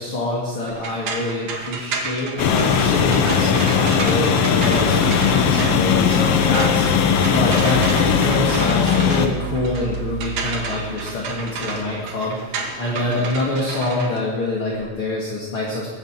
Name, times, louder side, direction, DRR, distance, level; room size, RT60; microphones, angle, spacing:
voice 1, 0.0-15.9, left 2 dB, 40° left, -3 dB, 2.6 m, -26 dB
sound 1, 0.7-14.9, right 4 dB, 55° right, 2.8 m, -31 dB
sound 2, 2.4-9.3, left 7 dB, 75° left, 1.4 m, -18 dB
sound 3, 4.6-12.8 13.2-13.3, right 5 dB, 75° right, 2.6 m, -34 dB
20.0 x 8.2 x 7.5 m, 1.4 s
omnidirectional pair, 4.2 m